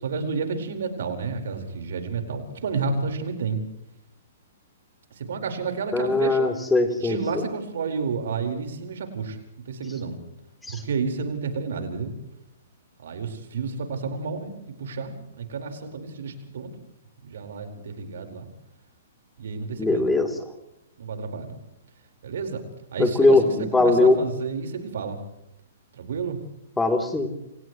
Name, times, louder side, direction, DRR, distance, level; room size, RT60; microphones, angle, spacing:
voice 1, 0.0-3.6 5.2-6.4 7.0-9.4 9.7-10.2 10.7-12.1 13.0-16.7 17.2-18.5 19.4-20.1 21.0-21.6 22.2-22.6 22.9-25.2 25.9-26.4, right 5 dB, 65° right, 4 dB, 4.7 m, -30 dB
voice 2, 5.9-7.2 10.6-10.8 19.8-20.3 23.0-24.2 26.8-27.3, left 2 dB, 10° left, 4 dB, 3.4 m, -20 dB
29.5 x 28.0 x 3.2 m, 0.82 s
hypercardioid pair, 120°, 0 cm